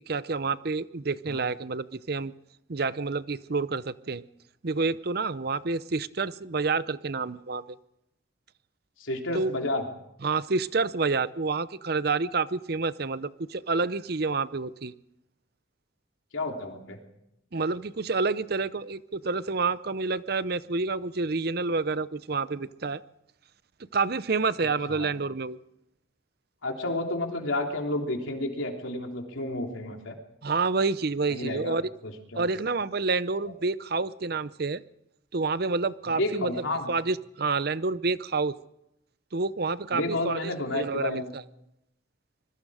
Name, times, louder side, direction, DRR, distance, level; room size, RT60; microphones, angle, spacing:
voice 1, 0.1-2.3 2.7-4.2 4.6-7.8 9.3-9.5 10.2-14.9 17.5-23.0 23.9-25.6 30.4-31.8 32.4-34.8 35.3-36.5 36.9-38.5 39.3-41.4, right 4 dB, 50° right, 16 dB, 0.7 m, -28 dB
voice 2, 9.0-9.8 16.3-17.0 24.9-25.1 26.6-30.2 31.3-31.7 32.0-32.5 33.4-33.5 36.1-36.9 39.9-41.3, left 2 dB, 85° left, 2 dB, 3.4 m, -31 dB
25.5 x 21.5 x 5.0 m, 0.82 s
head